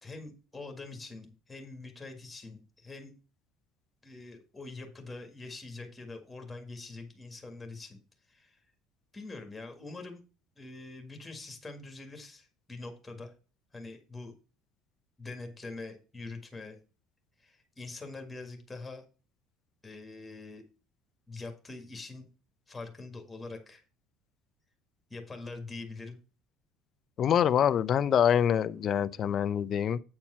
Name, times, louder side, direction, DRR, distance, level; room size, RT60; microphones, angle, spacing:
voice 1, 0.0-3.1 4.0-8.0 8.3-8.6 9.1-10.2 10.5-13.3 13.7-14.3 15.2-16.8 17.4-19.0 19.8-20.6 21.3-22.3 22.7-23.8 25.1-26.2, left 3 dB, 10° left, 1.7 m, -44 dB
voice 2, 27.2-30.0, left 9 dB, 35° left, 0.5 m, -25 dB
8.6 x 4.5 x 5.6 m
cardioid pair, 160°, 0 cm